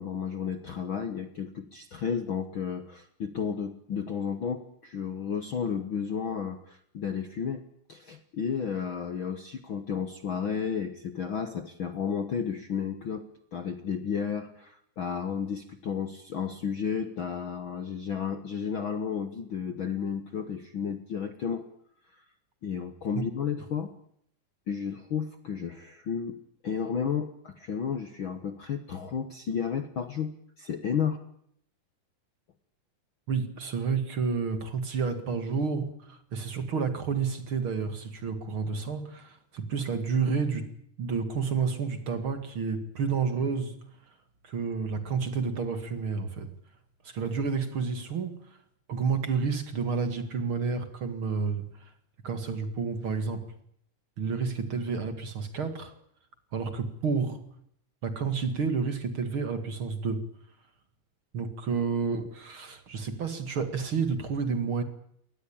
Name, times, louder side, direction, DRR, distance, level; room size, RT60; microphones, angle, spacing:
voice 1, 0.0-7.6 7.9-21.7 22.2-22.3 22.6-23.9 24.7-31.2, left 7 dB, 55° left, 1.5 m, -32 dB
voice 2, 33.3-40.7 41.0-43.8 44.4-46.5 47.0-48.4 48.9-51.7 52.2-53.4 54.2-55.9 56.5-57.4 58.0-60.3 61.3-64.8, right 5 dB, 45° right, 2.5 m, -30 dB
23.0 x 19.0 x 8.8 m
omnidirectional pair, 3.8 m